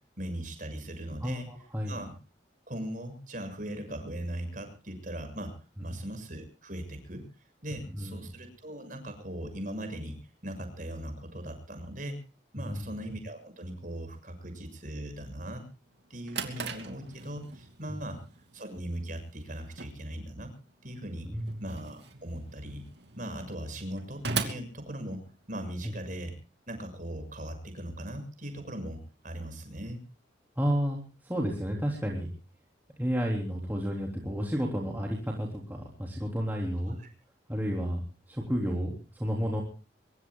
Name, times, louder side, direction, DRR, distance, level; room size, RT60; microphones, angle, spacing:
voice 1, 0.2-1.5 1.9-2.1 2.7-7.2 7.6-10.2 10.4-12.2 12.5-15.7 16.1-18.2 18.5-20.5 20.8-21.3 21.6-22.8 23.2-26.3 26.7-30.0, right 1 dB, 45° right, 7 dB, 6.7 m, -39 dB
voice 2, 1.2-2.0 5.8-5.9 7.9-8.3 12.6-12.8 17.9-18.0 21.2-21.6 25.8-25.9 30.6-32.3 33.0-37.0 37.5-39.6, equal, 10° right, -1 dB, 3.5 m, -32 dB
Drawer open or close, 15.9-25.7, right 4 dB, 65° right, 2.8 m, -40 dB
24.5 x 23.0 x 2.4 m, 0.36 s
head